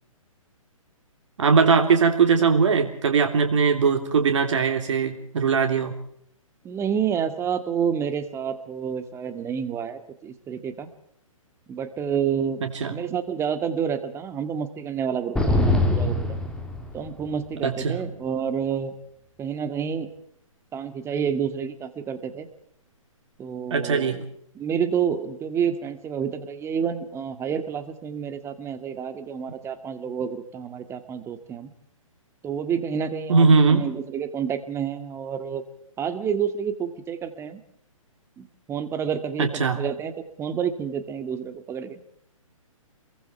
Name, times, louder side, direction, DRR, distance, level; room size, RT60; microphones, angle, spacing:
voice 1, 1.4-5.9 12.6-12.9 17.6-18.0 23.7-24.2 33.3-33.8 39.4-39.8, right 5 dB, 60° right, 6 dB, 3.3 m, -20 dB
voice 2, 6.6-10.9 11.7-12.6 12.9-16.4 16.9-18.9 19.4-20.1 20.7-22.5 23.4-24.2 24.6-31.7 32.4-35.6 36.0-37.6 38.4-42.0, right 7 dB, 15° right, 11 dB, 1.9 m, -29 dB
sound 1, 15.4-17.3, left 1 dB, 5° left, 3.0 m, -23 dB
29.0 x 23.0 x 4.4 m, 0.68 s
hypercardioid pair, 135°, 18 cm